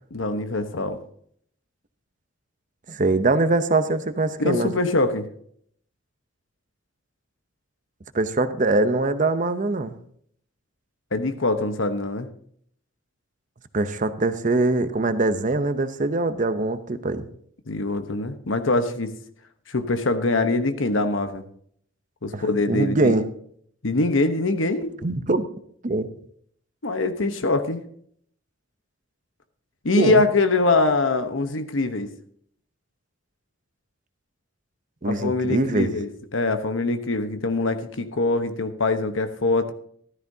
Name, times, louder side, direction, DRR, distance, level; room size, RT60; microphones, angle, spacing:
voice 1, 0.1-1.0 4.5-5.3 11.1-12.3 17.7-19.1 19.7-21.4 22.2-23.2 23.8-24.9 26.8-27.8 29.8-32.1 35.0-39.7, left 3 dB, 75° left, 8 dB, 1.1 m, -23 dB
voice 2, 2.9-4.7 8.1-9.9 13.7-17.3 22.3-23.2 25.0-25.4 25.8-26.1 30.0-30.2 35.0-35.9, right 2 dB, 40° right, 11 dB, 0.7 m, -23 dB
14.5 x 12.5 x 2.8 m, 0.63 s
head